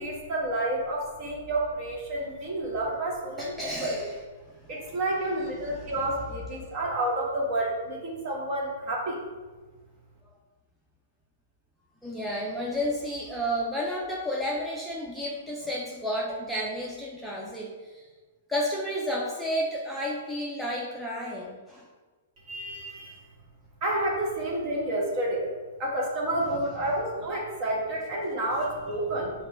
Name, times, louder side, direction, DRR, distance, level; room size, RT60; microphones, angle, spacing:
voice 1, 0.0-3.5 3.8-4.0 4.7-9.2 22.5-23.2 23.8-25.5 25.8-29.3, right 1 dB, 40° right, -2 dB, 1.4 m, -29 dB
voice 2, 3.4-4.1 4.8-5.0 5.6-5.9 12.0-18.0 18.5-21.9, equal, ahead, -5 dB, 0.6 m, -32 dB
5.1 x 2.3 x 4.3 m, 1.3 s
hypercardioid pair, 115°, 0 cm